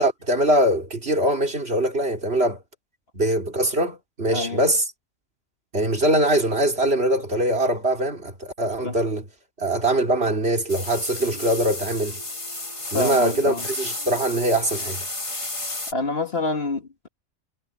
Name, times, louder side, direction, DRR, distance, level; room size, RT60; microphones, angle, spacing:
voice 1, 0.0-2.6 3.1-4.8 5.7-9.3 9.6-12.2 12.9-15.0, right 1 dB, 50° right, 3.4 m, -22 dB
voice 2, 4.3-4.6 8.8-8.9 12.9-13.6 15.9-17.1, left 3 dB, 50° left, 2.0 m, -27 dB
sound 1, 10.7-15.9, left 2 dB, 25° left, 1.8 m, -32 dB
omnidirectional pair, 1.3 m